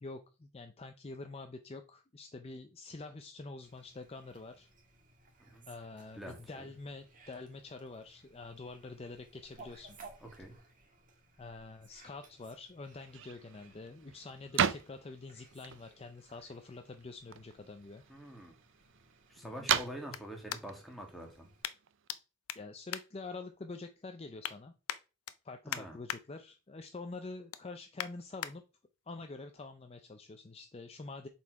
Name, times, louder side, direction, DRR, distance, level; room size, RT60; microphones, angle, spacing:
voice 1, 0.0-4.7 5.7-10.0 11.4-18.0 19.4-19.7 22.6-24.7 25.4-28.6 29.1-31.3, left 3 dB, 25° left, 7 dB, 0.5 m, -46 dB
Fowl, 3.6-21.6, right 3 dB, 35° right, 1.6 m, -60 dB
voice 2, 6.1-6.7 10.2-10.5 18.1-18.6 19.3-21.5 25.6-26.0, equal, ahead, 1 dB, 1.8 m, -46 dB
Cabin Porch Screen Door slamming, 12.9-22.1, right 8 dB, 55° right, 0.4 m, -39 dB
sound 1, 17.1-21.0 21.6-22.2 22.4-23.8 24.1-24.5 24.9-26.2 26.6-26.9 27.2-28.5 29.1-29.2, left 10 dB, 80° left, 0.6 m, -43 dB
7.2 x 4.3 x 4.7 m, 0.32 s
head